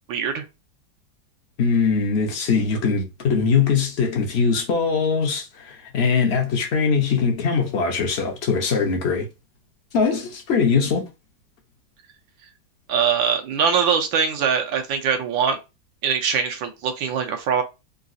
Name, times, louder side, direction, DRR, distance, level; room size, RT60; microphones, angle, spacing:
voice 1, 0.1-0.4 12.9-15.6 16.0-17.6, right 6 dB, 85° right, 1.4 m, -22 dB
voice 2, 1.6-9.3 9.9-11.0, left 5 dB, 60° left, 0.6 m, -21 dB
3.8 x 2.4 x 2.5 m
omnidirectional pair, 2.1 m